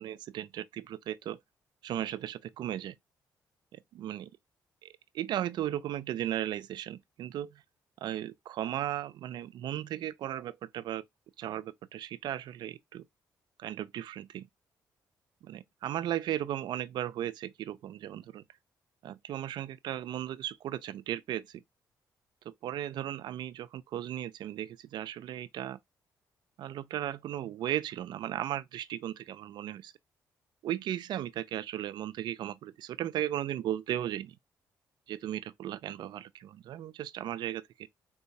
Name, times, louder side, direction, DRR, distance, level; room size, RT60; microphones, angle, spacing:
voice 1, 0.0-1.4 1.8-3.0 3.7-4.3 4.8-7.6 8.0-11.0 11.4-13.0 13.6-14.5 15.5-18.4 19.0-21.6 22.5-25.8 26.6-29.9 30.6-34.4 35.1-37.9, right 12 dB, 75° right, 0.3 m, -36 dB
3.8 x 2.2 x 2.7 m
cardioid pair, 75°, 8 cm